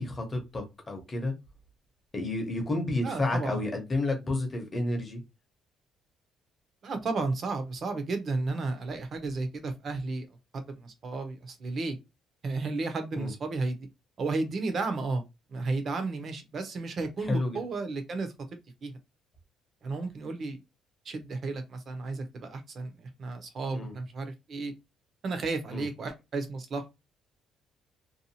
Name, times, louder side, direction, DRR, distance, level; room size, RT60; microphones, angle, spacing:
voice 1, 0.0-1.3 2.1-5.2 13.1-13.3 17.3-17.6 23.7-23.9 25.7-25.9, left 2 dB, 20° left, 0.8 m, -30 dB
voice 2, 3.0-3.7 6.8-10.3 10.5-12.0 12.4-13.9 14.2-15.2 15.5-18.3 18.8-18.9 19.8-20.6 21.0-24.7 25.2-26.9, right 3 dB, 35° right, 0.7 m, -33 dB
2.7 x 2.3 x 2.7 m
cardioid pair, 170°, 0 cm